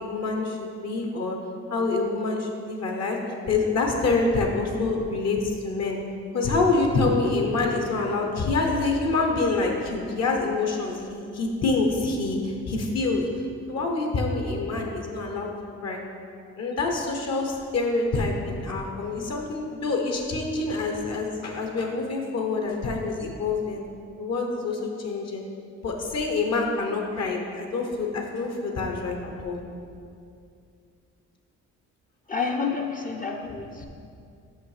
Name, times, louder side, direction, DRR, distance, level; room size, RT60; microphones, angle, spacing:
voice 1, 0.0-1.4 1.7-3.2 3.5-6.0 6.3-13.3 13.7-15.5 15.8-16.0 16.6-23.8 24.2-25.4 25.8-29.6 33.8-33.9, left 3 dB, 60° left, 2 dB, 1.0 m, -26 dB
voice 2, 32.3-33.9, left 5 dB, 25° left, 2 dB, 0.5 m, -29 dB
5.8 x 5.6 x 4.9 m, 2.4 s
cardioid pair, 90°, 30 cm